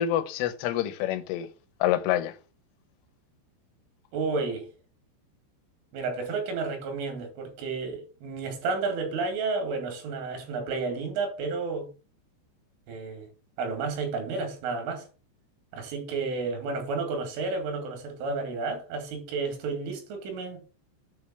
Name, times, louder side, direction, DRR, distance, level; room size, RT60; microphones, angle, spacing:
voice 1, 0.0-1.5 1.8-2.3, left 11 dB, 90° left, 3.5 m, -27 dB
voice 2, 4.1-4.7 5.9-11.9 12.9-13.3 13.6-15.1 15.7-20.7, right 4 dB, 80° right, 4.7 m, -31 dB
8.9 x 3.3 x 6.3 m
omnidirectional pair, 5.6 m